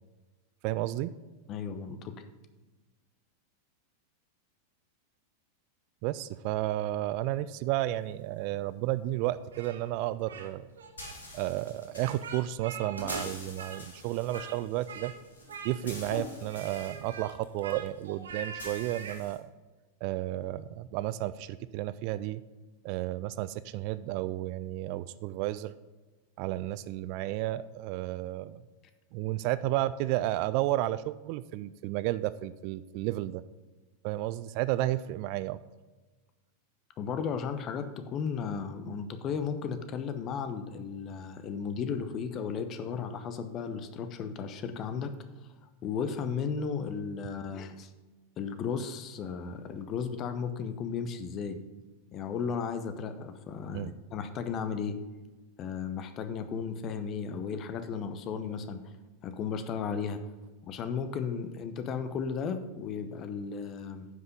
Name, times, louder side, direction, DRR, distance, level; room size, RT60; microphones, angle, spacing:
voice 1, 0.6-1.1 6.0-10.6 11.3-15.1 15.6-19.5 20.0-22.4 22.8-25.7 26.4-28.6 29.1-33.4 34.0-35.6 53.7-53.9, right 15 dB, 45° right, 15 dB, 0.3 m, -32 dB
voice 2, 1.5-2.1 37.0-45.1 45.6-47.9 48.4-51.6 52.1-55.0 55.6-58.8 59.2-60.2 60.6-64.1, left 6 dB, 35° left, 10 dB, 0.9 m, -35 dB
sound 1, 7.9-19.4, left 2 dB, 70° left, 1.9 m, -50 dB
Speech, 9.5-10.5 10.8-11.1 12.0-13.3 13.6-14.6 14.9-15.2 15.5-16.1 16.5-19.2, right 5 dB, 65° right, 1.0 m, -43 dB
sound 2, 12.8-17.8, equal, 80° right, 1.6 m, -44 dB
9.4 x 5.8 x 5.1 m, 1.2 s
figure-of-eight pair, 90°, 0 cm